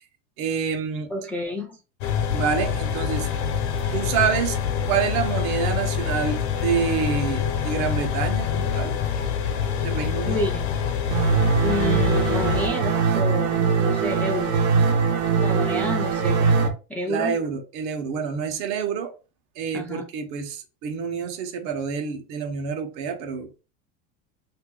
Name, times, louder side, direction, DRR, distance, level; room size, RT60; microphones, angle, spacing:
voice 1, 0.4-1.1 2.3-3.3 3.9-4.6 4.9-8.9 9.8-10.4 17.1-19.1 19.6-23.5, right 6 dB, 60° right, 6 dB, 1.0 m, -27 dB
voice 2, 1.1-1.8 10.3-10.6 11.6-14.6 15.4-17.4 19.7-20.0, left 1 dB, 5° left, -1 dB, 0.4 m, -30 dB
sound 1, 2.0-12.7, left 7 dB, 75° left, 0.9 m, -26 dB
sound 2, 11.1-16.7, right 5 dB, 85° right, 1.1 m, -21 dB
2.7 x 2.7 x 3.8 m, 0.31 s
supercardioid pair, 145°, 32 cm